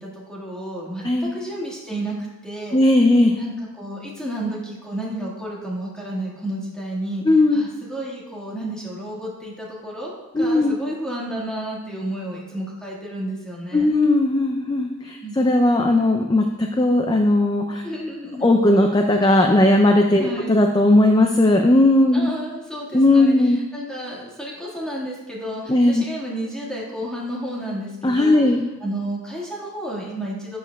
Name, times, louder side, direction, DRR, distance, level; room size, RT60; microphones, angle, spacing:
voice 1, 0.0-1.0 1.3-2.2 2.4-2.8 3.4-7.2 7.5-13.9 15.2-15.4 17.8-18.4 20.2-20.6 22.1-23.3 23.7-28.4 28.8-30.6, right 1 dB, 5° left, -4 dB, 1.6 m, -31 dB
voice 2, 2.7-3.4 7.2-7.6 10.3-10.7 13.7-17.8 18.4-22.3 22.9-23.6 25.7-26.0 28.0-28.6, left 1 dB, 20° left, 4 dB, 0.4 m, -17 dB
11.0 x 7.7 x 2.3 m, 1.1 s
head